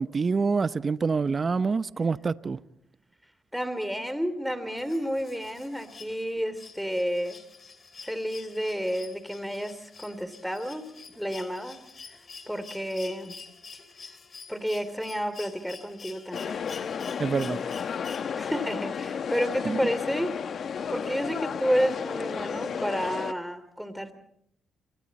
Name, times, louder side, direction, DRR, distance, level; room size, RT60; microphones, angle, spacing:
voice 1, 0.0-2.6 17.2-17.6 19.6-19.8, right 4 dB, 40° right, 0.8 m, -26 dB
voice 2, 3.5-7.4 8.0-10.8 11.1-11.8 12.5-13.4 14.5-16.6 18.3-20.4 20.9-24.1, equal, ahead, 3.2 m, -30 dB
sound 1, 4.8-18.7 20.1-20.2, left 5 dB, 45° left, 3.4 m, -48 dB
sound 2, 16.3-23.3, left 7 dB, 60° left, 1.1 m, -33 dB
28.5 x 25.0 x 4.3 m
cardioid pair, 70°, 0 cm